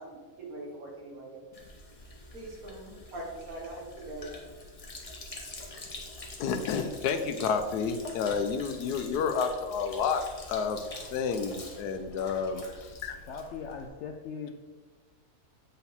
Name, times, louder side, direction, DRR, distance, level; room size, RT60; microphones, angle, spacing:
voice 1, 0.0-1.4 2.3-4.3, right 1 dB, 65° right, -1 dB, 1.9 m, -42 dB
Sink (filling or washing), 1.5-13.9, left 2 dB, 30° left, 0.8 m, -46 dB
voice 2, 6.4-10.8 11.1-13.2, left 6 dB, 90° left, 8 dB, 1.2 m, -30 dB
voice 3, 13.3-14.5, left 6 dB, 70° left, 3 dB, 0.7 m, -39 dB
7.8 x 4.2 x 4.1 m, 1.4 s
omnidirectional pair, 1.6 m